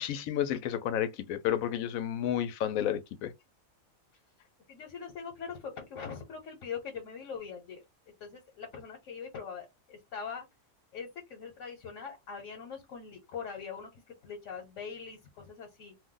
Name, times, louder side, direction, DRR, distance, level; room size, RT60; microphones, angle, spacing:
voice 1, 0.0-3.3, left 10 dB, 85° left, 1.0 m, -31 dB
voice 2, 4.7-10.5 10.9-15.9, left 6 dB, 70° left, 1.2 m, -42 dB
2.6 x 2.1 x 3.7 m
omnidirectional pair, 1.4 m